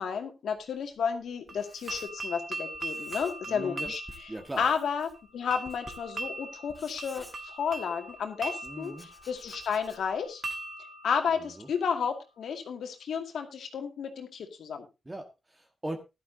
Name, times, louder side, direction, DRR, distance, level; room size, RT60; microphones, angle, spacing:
voice 1, 0.0-10.4 11.0-14.9, left 6 dB, 80° left, 5 dB, 2.1 m, -32 dB
Writing, 0.6-2.5 2.7-3.6 3.8-8.0 8.6-10.3, left 1 dB, 5° left, 2.5 m, -53 dB
sound 1, 1.5-12.3, right 2 dB, 40° right, 1.8 m, -41 dB
voice 2, 3.5-3.9 4.3-4.6 8.6-9.1 11.3-11.7 15.0-16.0, right 1 dB, 15° right, 4 dB, 1.6 m, -39 dB
15.5 x 11.5 x 2.8 m, 0.26 s
cardioid pair, 100°, 0 cm